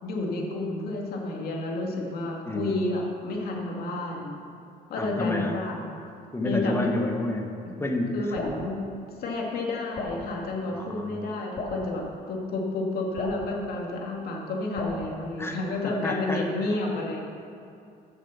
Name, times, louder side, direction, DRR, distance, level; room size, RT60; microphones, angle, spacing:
voice 1, 0.0-4.4 4.9-5.8 6.4-7.0 8.1-8.8 9.2-17.2, left 2 dB, 65° left, -1 dB, 2.3 m, -30 dB
voice 2, 2.5-2.8 5.0-5.6 6.3-7.5 7.8-8.4 10.7-11.2 15.4-15.6 15.8-16.5, left 1 dB, 15° left, 3 dB, 1.4 m, -29 dB
Drip, 8.3-8.6 9.9-10.2 11.5-11.8 13.1-13.4 14.8-15.0, left 2 dB, 45° left, 2.6 m, -34 dB
14.0 x 7.1 x 5.8 m, 2.5 s
cardioid pair, 110°, 17 cm